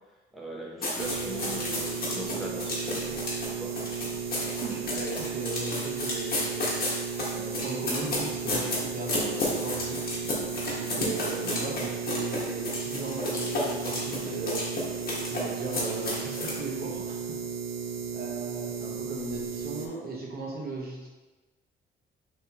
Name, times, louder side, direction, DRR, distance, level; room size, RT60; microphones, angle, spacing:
voice 1, 0.3-3.8, right 1 dB, ahead, -4 dB, 0.8 m, -39 dB
sound 1, 0.8-16.6, left 2 dB, 50° left, 1.4 m, -32 dB
sound 2, 1.0-19.9, right 6 dB, 90° right, 0.5 m, -35 dB
voice 2, 4.4-6.8 7.3-10.0 10.7-14.8 15.3-17.4 18.1-21.1, right 3 dB, 50° right, -2 dB, 1.1 m, -37 dB
5.3 x 3.3 x 2.9 m, 1.2 s
cardioid pair, 90°, 20 cm